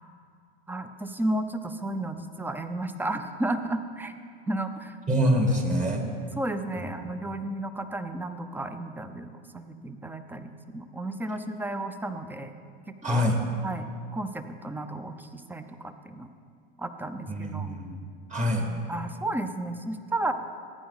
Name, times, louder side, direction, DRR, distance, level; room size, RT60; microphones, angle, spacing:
voice 1, 0.7-4.1 4.5-5.0 6.4-12.6 13.0-13.3 13.6-16.3 16.8-17.7 18.6-20.3, right 1 dB, 5° right, 9 dB, 0.6 m, -33 dB
voice 2, 5.1-6.0 6.8-6.9 13.0-13.4 17.3-17.9 18.3-18.7, equal, 25° right, 2 dB, 2.0 m, -25 dB
15.0 x 9.5 x 4.1 m, 2.2 s
hypercardioid pair, 100°, 30 cm